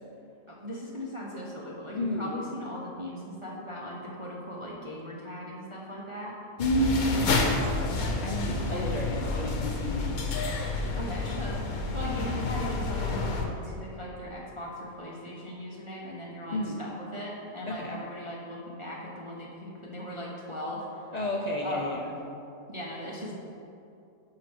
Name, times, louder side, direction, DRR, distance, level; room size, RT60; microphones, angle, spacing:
voice 1, 0.5-6.3 8.6-9.4 10.9-21.1 21.6-21.9 22.7-23.4, equal, 30° right, -5 dB, 0.7 m, -38 dB
voice 2, 1.9-2.3 6.6-10.4 16.5-16.8 17.7-18.0 21.1-22.1, equal, 60° left, 0 dB, 0.4 m, -31 dB
sound 1, 6.6-13.4, left 3 dB, 80° left, 1.3 m, -29 dB
6.5 x 4.7 x 6.1 m, 2.6 s
omnidirectional pair, 1.5 m